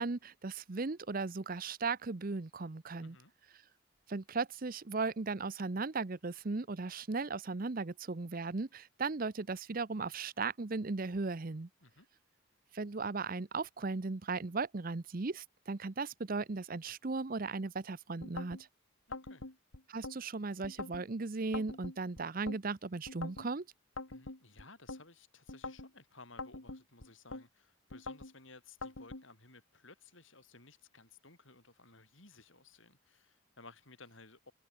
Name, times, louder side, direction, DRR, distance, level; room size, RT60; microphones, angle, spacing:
voice 1, 0.0-3.2 4.1-11.7 12.7-18.7 19.9-23.7, right 3 dB, 45° right, 0.7 m, -37 dB
voice 2, 3.0-3.3 11.8-12.1 19.1-19.5 24.1-34.5, left 3 dB, 70° left, 7.8 m, -58 dB
sound 1, 18.2-18.6 19.1-20.2 20.6-21.1 21.5-22.6 23.1-23.5 24.0-25.0 25.5-25.9 26.4-27.4 27.9-28.3 28.8-29.2, left 3 dB, 85° left, 2.7 m, -44 dB
head